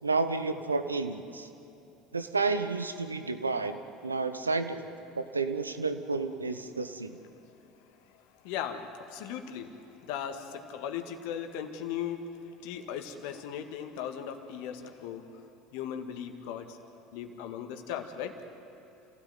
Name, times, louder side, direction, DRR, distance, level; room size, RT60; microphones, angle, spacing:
voice 1, 0.0-1.5 2.1-4.8 5.1-7.2, right 3 dB, 90° right, 10 dB, 1.0 m, -31 dB
voice 2, 8.4-12.3 12.6-15.3 15.7-16.8 17.1-18.4, left 9 dB, 65° left, 6 dB, 1.9 m, -37 dB
28.0 x 16.5 x 9.4 m, 2.8 s
figure-of-eight pair, 70°, 0 cm